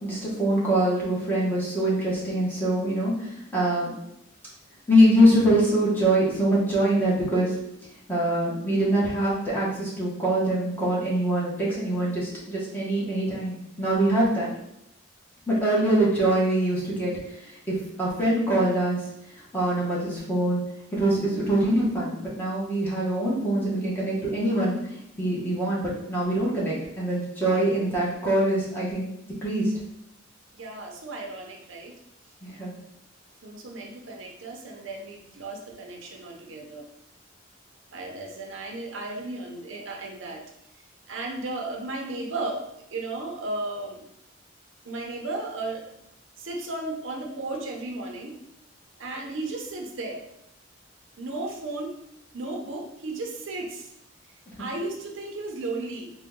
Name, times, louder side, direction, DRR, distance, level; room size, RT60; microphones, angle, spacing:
voice 1, 0.0-3.9 4.9-7.6 8.1-14.5 15.5-19.1 19.4-20.6 20.9-29.1 29.4-29.7 32.4-32.7, right 1 dB, 10° left, -7 dB, 1.0 m, -24 dB
voice 2, 30.5-31.9 33.4-36.8 37.9-40.4 41.1-44.0 44.8-45.8 46.4-48.4 49.0-50.2 51.2-51.9 52.3-53.9 54.6-56.1, right 2 dB, 75° right, 1 dB, 0.6 m, -34 dB
3.8 x 2.2 x 3.6 m, 0.80 s
head